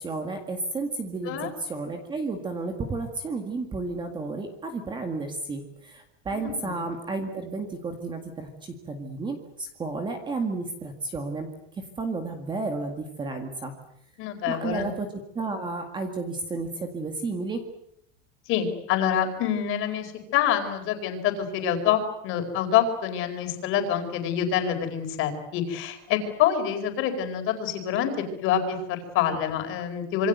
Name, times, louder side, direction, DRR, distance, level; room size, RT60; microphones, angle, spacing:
voice 1, 0.0-11.5 11.8-13.7 14.5-15.1 15.3-17.6, right 3 dB, 15° right, 5 dB, 1.9 m, -32 dB
voice 2, 6.3-6.7 14.2-14.9 18.5-28.1 28.4-30.3, left 9 dB, 35° left, 6 dB, 4.5 m, -26 dB
26.5 x 24.5 x 8.1 m, 0.76 s
supercardioid pair, 180°, 36 cm